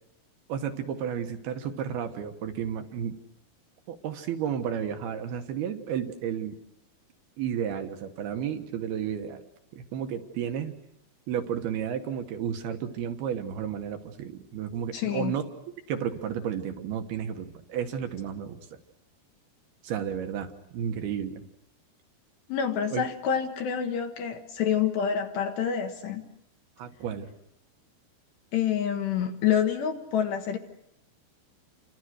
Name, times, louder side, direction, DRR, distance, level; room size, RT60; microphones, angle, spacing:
voice 1, 0.5-3.2 3.9-6.6 7.4-9.4 9.7-10.8 11.3-15.5 15.9-18.6 19.8-21.4 22.9-23.0 26.8-27.3, right 8 dB, 65° right, 6 dB, 2.8 m, -32 dB
voice 2, 14.9-15.3 22.5-26.3 28.5-30.6, left 8 dB, 65° left, 4 dB, 3.1 m, -27 dB
29.5 x 26.0 x 6.5 m, 0.82 s
omnidirectional pair, 5.9 m